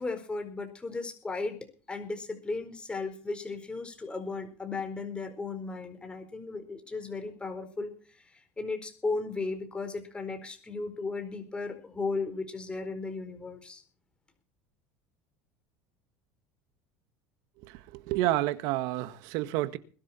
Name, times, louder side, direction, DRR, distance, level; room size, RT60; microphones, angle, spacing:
voice 1, 0.0-1.6 1.9-13.8, left 3 dB, 15° left, 4.4 m, -35 dB
voice 2, 17.6-19.8, right 15 dB, 70° right, 1.7 m, -30 dB
21.5 x 11.0 x 4.4 m
supercardioid pair, 110°, 7 cm